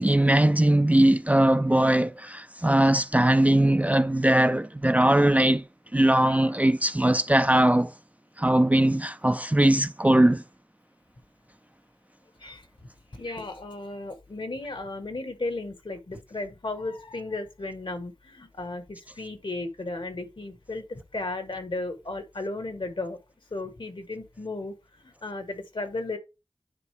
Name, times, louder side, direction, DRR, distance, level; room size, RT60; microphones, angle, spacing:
voice 1, 0.0-5.6 5.9-7.9 8.4-10.4, right 1 dB, 15° right, 0.4 m, -20 dB
voice 2, 13.1-23.2 23.5-24.7 25.0-26.2, left 2 dB, 65° left, 1.3 m, -35 dB
9.8 x 4.0 x 3.4 m
wide cardioid pair, 55°, 9 cm